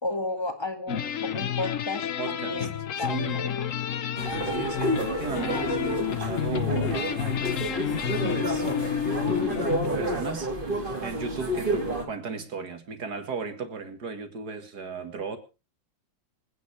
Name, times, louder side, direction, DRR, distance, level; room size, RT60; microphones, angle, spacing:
voice 1, 0.0-3.7, left 2 dB, 15° left, 5 dB, 1.8 m, -33 dB
sound 1, 0.9-10.0, left 9 dB, 55° left, 1.0 m, -30 dB
voice 2, 2.2-2.7 3.0-3.4 4.4-7.6 8.3-8.7 9.9-10.5 11.0-15.4, right 5 dB, 55° right, 8 dB, 2.2 m, -36 dB
sound 2, 4.2-12.0, right 1 dB, 25° right, 2.3 m, -30 dB
25.5 x 9.5 x 3.3 m, 0.30 s
omnidirectional pair, 2.1 m